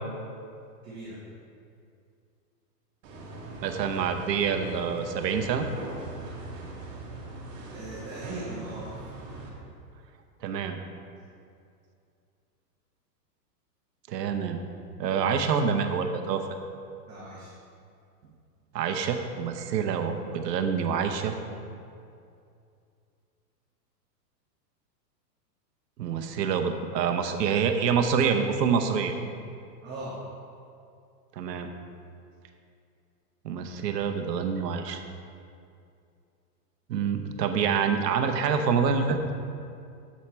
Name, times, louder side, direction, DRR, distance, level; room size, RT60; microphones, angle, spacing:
voice 1, 0.8-1.2 7.7-8.9 17.1-17.5 29.8-30.1, right 2 dB, 20° right, -8 dB, 1.1 m, -39 dB
sound 1, 3.0-9.5, right 2 dB, 45° right, 1.4 m, -41 dB
voice 2, 3.6-5.7 10.4-10.8 14.1-14.6 15.0-16.4 18.7-21.3 26.0-29.1 31.4-31.7 33.4-35.0 36.9-39.2, right 6 dB, 75° right, 6 dB, 0.8 m, -26 dB
7.3 x 4.4 x 4.2 m, 2.4 s
hypercardioid pair, 140°, 50 cm